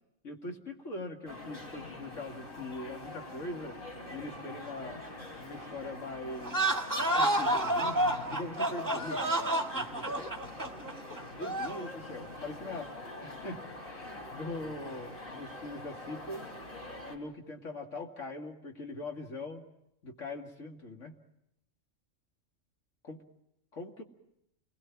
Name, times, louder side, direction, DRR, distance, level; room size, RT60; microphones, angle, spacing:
voice 1, 0.2-5.1 5.4-6.6 7.2-9.2 9.7-10.3 11.3-12.9 13.2-13.6 13.8-16.5 17.1-19.6 20.0-21.1 23.0-23.2 23.7-24.0, left 2 dB, 80° left, 2 dB, 2.6 m, -42 dB
sound 1, 1.3-17.2, left 2 dB, 50° left, 4.2 m, -45 dB
sound 2, 6.4-11.9, right 1 dB, 15° right, 1.7 m, -30 dB
29.0 x 21.5 x 5.9 m, 0.80 s
omnidirectional pair, 1.3 m